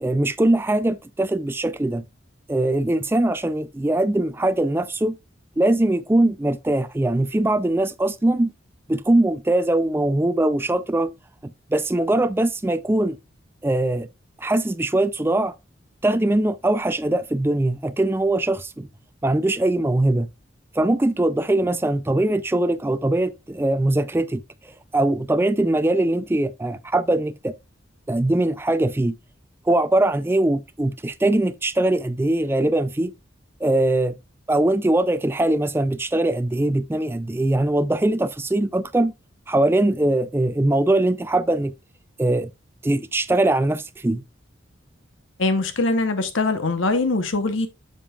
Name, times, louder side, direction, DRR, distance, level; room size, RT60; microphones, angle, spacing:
voice 1, 0.0-2.0 2.5-5.2 5.6-8.5 8.9-11.1 11.7-13.2 13.6-14.1 14.4-15.5 16.0-18.9 19.2-20.3 20.8-24.4 24.9-27.5 28.1-29.1 29.7-33.1 33.6-34.2 34.5-39.1 39.5-41.7 42.2-42.5 42.8-44.2, right 1 dB, 10° right, 0.3 m, -21 dB
voice 2, 45.4-47.7, left 3 dB, 75° left, 0.9 m, -22 dB
7.5 x 6.9 x 2.4 m
head